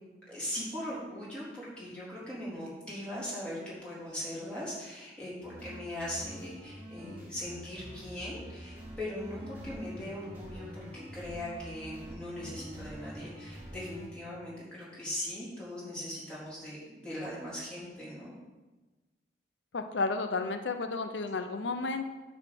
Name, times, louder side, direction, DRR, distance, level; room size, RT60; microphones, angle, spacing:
voice 1, 0.3-18.3, left 1 dB, 5° left, -9 dB, 3.5 m, -40 dB
sound 1, 5.4-14.1, equal, 10° right, 2.3 m, -46 dB
voice 2, 19.7-22.1, left 3 dB, 80° left, 7 dB, 0.7 m, -32 dB
9.7 x 4.2 x 7.5 m, 1.2 s
head